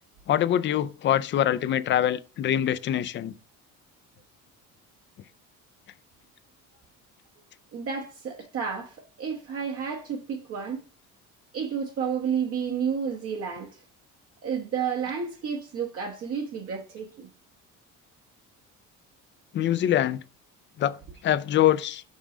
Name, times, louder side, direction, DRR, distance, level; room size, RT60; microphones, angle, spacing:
voice 1, 0.3-3.3 19.5-20.2 20.8-21.0 21.2-22.0, left 11 dB, 40° left, 0.4 m, -24 dB
voice 2, 7.7-10.8 11.5-13.8 14.4-17.3, right 7 dB, 45° right, 1.0 m, -31 dB
6.1 x 5.5 x 4.9 m
cardioid pair, 175°, 32 cm